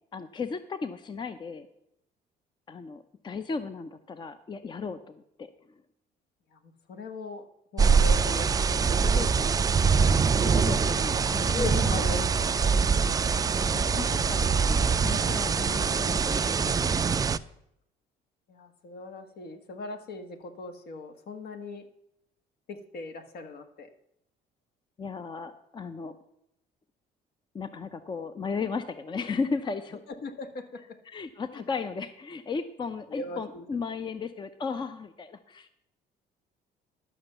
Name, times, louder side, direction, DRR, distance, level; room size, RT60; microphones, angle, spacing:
voice 1, 0.1-1.7 2.7-5.5 8.3-8.4 10.4-12.3 13.7-16.8 25.0-26.2 27.5-30.0 31.1-35.7, left 5 dB, 25° left, 11 dB, 0.6 m, -35 dB
voice 2, 6.5-7.5 7.7-9.8 11.5-12.6 18.5-21.9 22.7-23.9 30.1-30.8 31.5-31.6 33.1-33.6, left 3 dB, 65° left, 8 dB, 1.4 m, -39 dB
sound 1, 7.8-17.4, right 5 dB, 20° right, 0.3 m, -24 dB
11.5 x 6.1 x 6.7 m, 0.78 s
cardioid pair, 110°, 17 cm